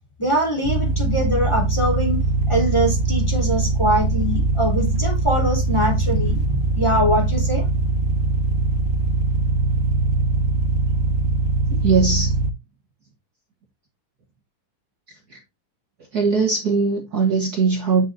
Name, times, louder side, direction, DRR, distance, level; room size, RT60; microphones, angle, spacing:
voice 1, 0.2-2.2 2.5-7.7, equal, 10° left, 3.5 m, -22 dB
sound 1, 0.6-12.5, right 3 dB, 75° right, 0.5 m, -21 dB
voice 2, 11.7-12.3 15.3-15.4 16.1-18.0, right 4 dB, 50° right, 1.8 m, -20 dB
9.0 x 6.1 x 2.7 m
omnidirectional pair, 2.4 m